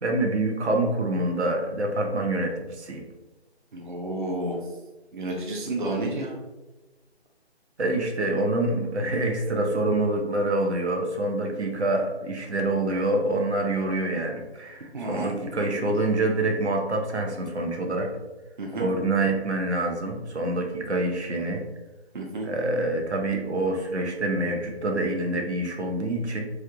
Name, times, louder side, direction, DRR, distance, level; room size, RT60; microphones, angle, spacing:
voice 1, 0.0-3.0 7.8-18.1 18.7-21.6 22.4-26.5, right 2 dB, 85° right, 2 dB, 0.7 m, -26 dB
voice 2, 3.7-4.6 5.1-6.4 14.9-15.3 18.6-18.9 22.1-22.5, right 2 dB, 50° right, 0 dB, 0.5 m, -30 dB
3.2 x 2.4 x 2.8 m, 1.1 s
figure-of-eight pair, 155°, 33 cm